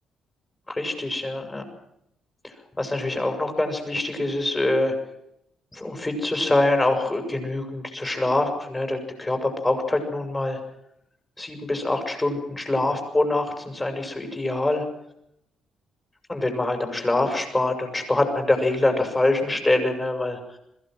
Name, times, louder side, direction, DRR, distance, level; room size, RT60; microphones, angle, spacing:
voice 1, 0.7-1.6 2.4-4.9 5.7-10.6 11.4-14.8 16.3-20.6, left 2 dB, 15° left, 5 dB, 6.2 m, -24 dB
21.5 x 16.0 x 7.7 m, 0.77 s
cardioid pair, 90°, 0 cm